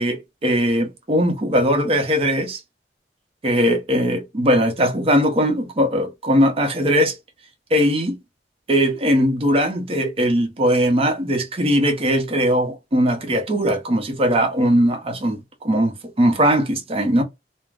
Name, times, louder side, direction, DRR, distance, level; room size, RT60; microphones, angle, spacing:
voice 1, 0.0-2.6 3.4-7.2 7.7-8.2 8.7-17.2, equal, 35° right, 0.6 m, -19 dB
2.4 x 2.0 x 3.3 m
head